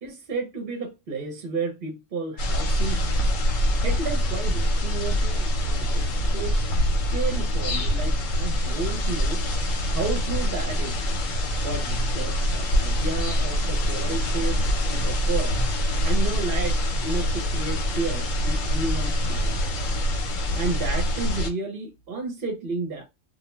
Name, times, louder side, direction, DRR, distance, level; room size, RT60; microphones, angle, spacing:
voice 1, 0.0-3.1 3.7-6.7 7.1-9.4 9.9-11.0 11.6-15.6 16.0-19.6 20.6-23.0, right 4 dB, 50° right, 0.8 m, -32 dB
sound 1, 2.4-21.5, equal, 80° left, 1.1 m, -24 dB
2.4 x 2.1 x 3.0 m
omnidirectional pair, 1.3 m